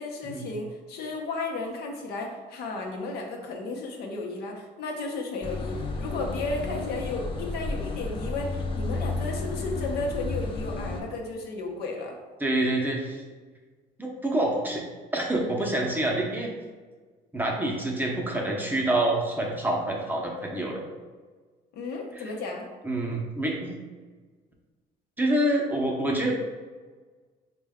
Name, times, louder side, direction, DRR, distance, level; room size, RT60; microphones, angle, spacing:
voice 1, 0.0-12.2 21.7-22.7, left 3 dB, 70° left, 1 dB, 0.8 m, -34 dB
sound 1, 5.4-11.0, left 3 dB, 30° left, 0.5 m, -32 dB
voice 2, 12.4-13.2 14.0-14.8 15.1-16.5 17.3-20.8 22.1-22.2 22.8-23.7 25.2-26.4, right 1 dB, 10° right, -1 dB, 0.7 m, -27 dB
4.3 x 2.2 x 3.5 m, 1.4 s
cardioid pair, 110°, 17 cm